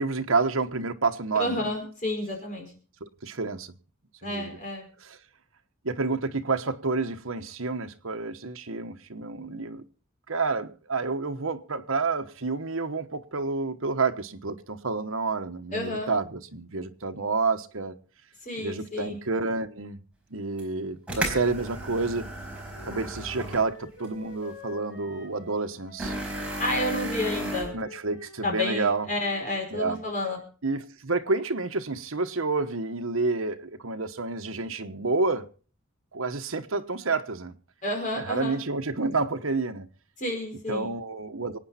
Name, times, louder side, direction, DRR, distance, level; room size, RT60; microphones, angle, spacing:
voice 1, 0.0-1.7 3.0-3.7 4.2-4.6 5.0-5.2 5.8-9.8 10.3-17.9 18.6-20.0 20.3-22.3 22.9-26.2 27.7-29.1 29.7-30.0 30.6-35.5 36.1-37.5 38.1-39.9 40.7-41.6, right 3 dB, 70° right, 1.2 m, -29 dB
voice 2, 1.4-2.7 4.2-4.9 15.7-16.1 18.4-19.2 26.6-27.7 28.4-30.4 37.8-38.6 40.2-40.9, left 1 dB, 35° left, 5.1 m, -30 dB
sound 1, 20.6-20.7 21.1-23.7 24.0-24.1 26.0-27.6, right 1 dB, 5° right, 4.5 m, -33 dB
Wind instrument woodwind instrument, 22.2-29.7, left 2 dB, 55° left, 5.2 m, -48 dB
25.5 x 9.2 x 4.3 m
head